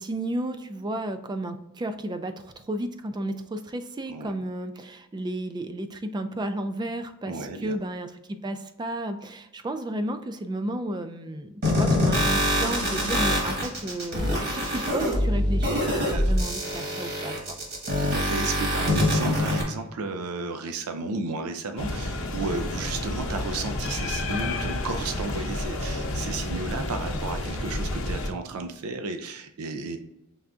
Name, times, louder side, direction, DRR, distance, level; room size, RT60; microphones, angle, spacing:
voice 1, 0.0-17.6, right 1 dB, 20° right, 9 dB, 0.3 m, -33 dB
voice 2, 7.3-7.8 16.1-16.2 18.0-30.0, right 3 dB, 80° right, 7 dB, 0.5 m, -33 dB
sound 1, 11.6-19.6, left 1 dB, 45° right, 1.5 m, -24 dB
sound 2, 21.8-28.3, left 2 dB, 65° left, 0.7 m, -30 dB
5.5 x 3.4 x 2.5 m, 0.89 s
head